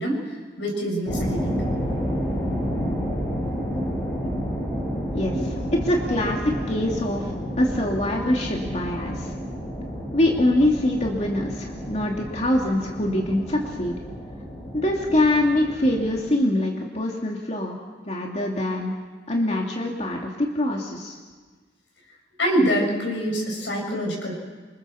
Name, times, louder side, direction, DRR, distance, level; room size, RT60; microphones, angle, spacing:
voice 1, 0.0-1.6 5.3-5.5 22.4-24.4, equal, 85° left, 0 dB, 7.9 m, -25 dB
sound 1, 1.1-16.3, equal, 20° left, 7.1 m, -30 dB
voice 2, 5.7-9.3 10.1-14.0 14.7-17.8 18.0-18.9 19.3-21.2, left 1 dB, 40° left, 0 dB, 2.6 m, -24 dB
27.5 x 25.0 x 7.1 m, 1.4 s
head